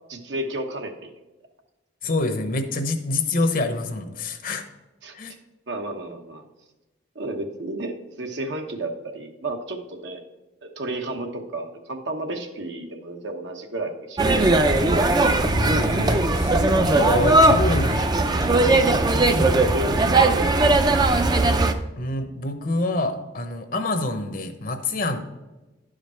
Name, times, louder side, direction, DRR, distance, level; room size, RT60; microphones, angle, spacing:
voice 1, 0.1-1.1 5.0-5.1 5.7-6.4 7.1-10.2 10.6-14.2 14.8-15.0 19.6-20.7, right 2 dB, 70° right, 4 dB, 1.1 m, -32 dB
voice 2, 2.0-4.6 5.1-5.3 15.4-18.1 22.0-25.2, left 2 dB, 50° left, 7 dB, 0.9 m, -26 dB
sound 1, 14.2-21.7, right 2 dB, 20° right, 0.5 m, -19 dB
11.5 x 5.1 x 4.3 m, 1.1 s
head